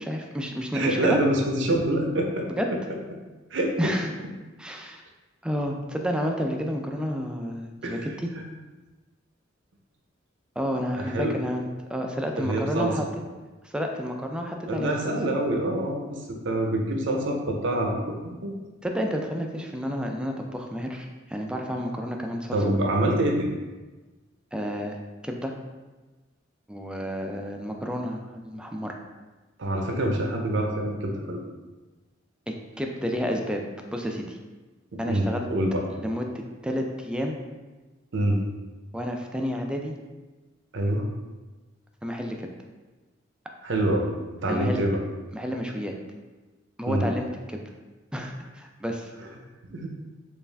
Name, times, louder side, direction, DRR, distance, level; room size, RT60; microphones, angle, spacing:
voice 1, 0.1-1.2 2.6-2.7 3.8-4.1 4.6-5.0 5.4-8.3 10.6-13.1 13.6-15.1 18.8-22.6 24.5-25.0 25.2-25.5 26.7-29.0 32.5-33.6 33.9-34.4 35.0-35.5 36.0-37.3 38.9-40.0 42.0-42.5 44.5-44.8 45.3-46.0 46.8-47.6 48.1-49.1, equal, 5° right, 2 dB, 0.3 m, -30 dB
voice 2, 0.7-2.8 3.5-3.9 7.8-8.1 8.3-8.4 11.0-11.3 12.4-13.0 14.7-16.2 16.4-18.0 18.4-18.5 22.5-23.5 29.6-31.4 34.9-35.8 38.1-38.4 40.7-41.1 43.6-44.1 44.3-45.0 46.9-47.1 49.7-49.9, right 1 dB, 65° right, 1 dB, 0.6 m, -26 dB
4.4 x 2.5 x 3.3 m, 1.2 s
head